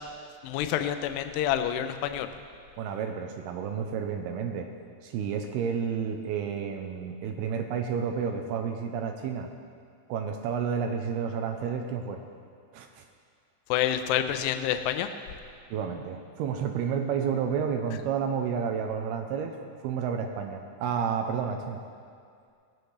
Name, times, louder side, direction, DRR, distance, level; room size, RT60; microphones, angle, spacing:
voice 1, 0.4-2.3 13.7-15.1, left 11 dB, 80° left, 9 dB, 2.7 m, -28 dB
voice 2, 2.8-4.7 5.0-9.5 10.1-12.2 12.7-13.0 15.7-21.8, right 7 dB, 85° right, 4 dB, 2.5 m, -31 dB
18.0 x 13.0 x 3.3 m, 2.2 s
omnidirectional pair, 5.0 m